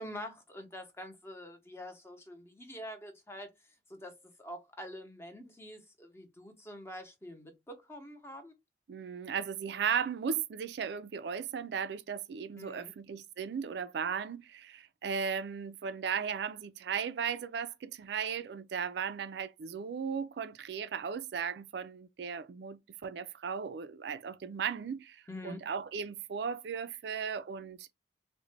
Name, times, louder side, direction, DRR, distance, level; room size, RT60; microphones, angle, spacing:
voice 1, 0.0-3.5 3.9-4.1 4.4-8.5 12.6-12.9 25.3-25.6, equal, 15° left, 0.7 m, -46 dB
voice 2, 8.9-27.9, right 6 dB, 65° right, 0.4 m, -36 dB
3.7 x 2.1 x 3.2 m
head